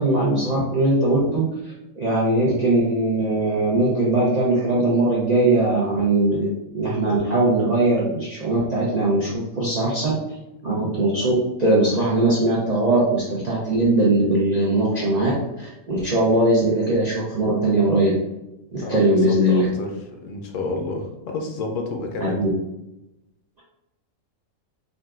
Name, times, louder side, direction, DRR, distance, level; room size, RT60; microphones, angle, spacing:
voice 1, 0.0-1.4 2.0-10.1 10.6-11.3 11.6-15.3 15.6-18.1 18.7-19.7 22.2-22.5, right 2 dB, 55° right, -6 dB, 0.4 m, -20 dB
voice 2, 18.8-19.9 20.2-22.4, left 3 dB, 75° left, 2 dB, 0.9 m, -29 dB
3.8 x 2.3 x 2.3 m, 0.92 s
omnidirectional pair, 1.4 m